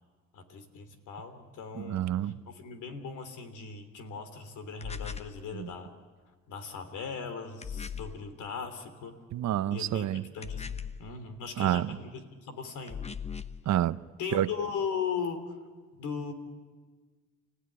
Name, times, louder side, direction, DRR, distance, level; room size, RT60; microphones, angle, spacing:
voice 1, 0.3-5.9 6.5-9.2 9.7-10.1 10.3-13.1 14.2-15.5 16.0-16.3, left 6 dB, 80° left, 9 dB, 3.2 m, -38 dB
voice 2, 1.8-2.3 5.5-5.7 9.3-10.2 11.6-12.0 13.7-14.0 14.3-14.5, right 12 dB, 65° right, 15 dB, 0.7 m, -28 dB
sound 1, 4.8-5.4 7.6-8.2 10.4-11.1 12.9-13.6, left 7 dB, 20° left, 0.8 m, -38 dB
29.5 x 16.0 x 9.9 m, 1.5 s
cardioid pair, 90°, 30 cm